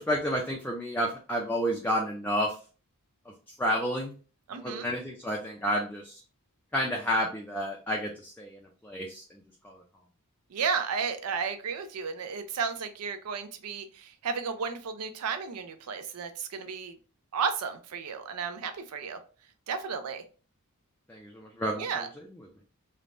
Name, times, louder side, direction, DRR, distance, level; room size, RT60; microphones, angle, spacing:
voice 1, 0.0-2.5 3.6-4.1 4.6-6.1 6.7-8.6 8.8-9.2 9.6-9.7 21.1-21.9, equal, 10° left, -1 dB, 0.4 m, -30 dB
voice 2, 4.5-4.9 10.5-17.0 17.3-19.2 19.7-20.2 21.8-22.1, right 6 dB, 90° right, 8 dB, 0.5 m, -33 dB
3.3 x 2.1 x 2.5 m, 0.37 s
head